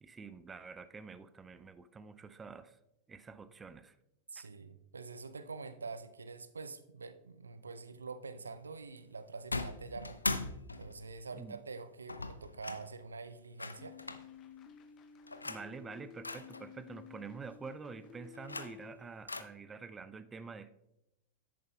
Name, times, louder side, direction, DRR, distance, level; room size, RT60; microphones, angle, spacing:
voice 1, 0.0-2.8 3.1-4.0 4.4-4.5 11.3-11.6 15.4-20.7, right 5 dB, 15° right, 13 dB, 0.4 m, -47 dB
voice 2, 4.3-10.2 10.8-14.0, right 4 dB, 75° right, 12 dB, 0.5 m, -46 dB
sound 1, 9.5-11.2 12.1-12.9 13.6-14.3 15.3-15.7 16.2-16.6 18.2-18.9 19.3-19.4, left 3 dB, 80° left, 0.4 m, -39 dB
sound 2, 13.8-19.0, left 8 dB, 30° left, 0.6 m, -53 dB
10.5 x 8.5 x 2.2 m, 0.88 s
figure-of-eight pair, 90°, 0 cm